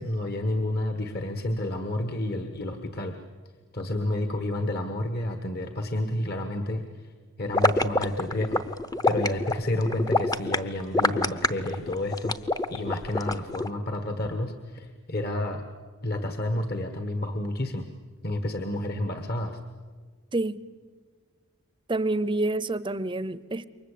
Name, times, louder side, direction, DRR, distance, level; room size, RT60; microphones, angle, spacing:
voice 1, 0.0-3.1 3.7-7.1 7.4-8.6 9.1-12.4 12.7-15.6 16.0-17.9 18.2-19.6, left 1 dB, 45° left, 7 dB, 1.5 m, -30 dB
sound 1, 7.5-13.7, left 2 dB, 15° left, 0.8 m, -25 dB
voice 2, 21.9-23.6, right 2 dB, 20° right, 17 dB, 0.7 m, -27 dB
28.5 x 23.5 x 8.5 m, 1.5 s
head